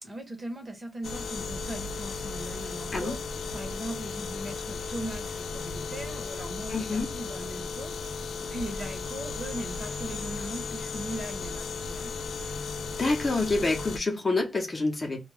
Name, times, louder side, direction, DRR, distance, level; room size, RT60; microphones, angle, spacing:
voice 1, 0.0-3.2 3.5-12.1, right 1 dB, 25° right, 0.9 m, -39 dB
sound 1, 1.0-14.0, left 4 dB, 80° left, 0.3 m, -35 dB
voice 2, 6.7-7.1 13.0-15.3, left 3 dB, 30° left, 0.8 m, -27 dB
2.3 x 2.2 x 3.2 m
wide cardioid pair, 130°, 0 cm